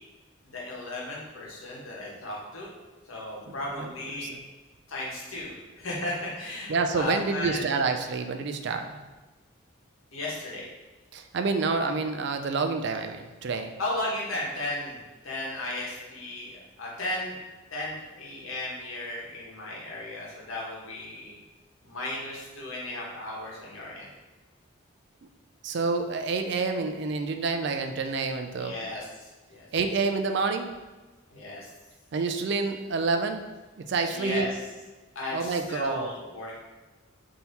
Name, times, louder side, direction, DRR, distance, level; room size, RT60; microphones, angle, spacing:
voice 1, 0.4-2.7 3.1-4.3 4.9-7.6 10.1-10.7 13.8-17.4 17.7-21.4 21.8-24.1 28.6-29.7 31.3-31.7 34.1-34.6 35.1-36.6, left 1 dB, 85° left, -4 dB, 1.2 m, -35 dB
voice 2, 3.5-3.9 4.2-4.4 6.7-9.0 11.1-13.7 25.6-28.8 29.7-30.7 32.1-33.4 33.8-34.5 35.3-36.1, right 4 dB, 60° right, 6 dB, 0.4 m, -28 dB
3.8 x 2.9 x 4.0 m, 1.2 s
head